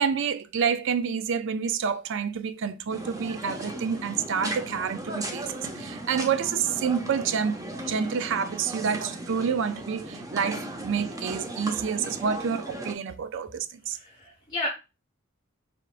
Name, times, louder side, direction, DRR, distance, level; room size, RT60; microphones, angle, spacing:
voice 1, 0.0-7.6 7.9-14.0, right 6 dB, 60° right, 0.4 m, -28 dB
sound 1, 2.9-13.0, right 1 dB, 15° right, 0.6 m, -37 dB
voice 2, 13.9-14.7, left 2 dB, 20° left, 0.7 m, -33 dB
4.8 x 3.5 x 2.4 m
head